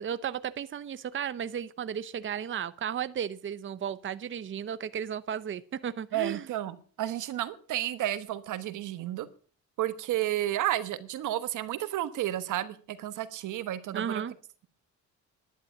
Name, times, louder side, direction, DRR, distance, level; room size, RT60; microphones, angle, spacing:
voice 1, 0.0-6.5 13.9-14.3, right 8 dB, 40° right, 14 dB, 0.8 m, -34 dB
voice 2, 6.1-9.3 9.8-14.2, right 13 dB, 80° right, 13 dB, 1.3 m, -32 dB
11.0 x 11.0 x 7.2 m, 0.43 s
cardioid pair, 90°, 30 cm